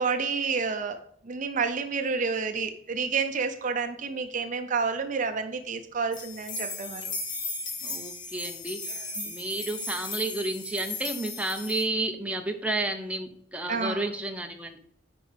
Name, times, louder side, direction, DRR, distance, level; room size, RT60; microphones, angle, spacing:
voice 1, 0.0-7.1 8.9-9.3 13.7-14.1, right 5 dB, 40° right, 7 dB, 0.6 m, -30 dB
sound 1, 6.1-11.8, left 3 dB, 65° left, 1.6 m, -36 dB
voice 2, 7.8-8.8 9.3-14.8, right 2 dB, 5° right, 4 dB, 0.7 m, -31 dB
9.4 x 5.3 x 3.4 m, 0.66 s
head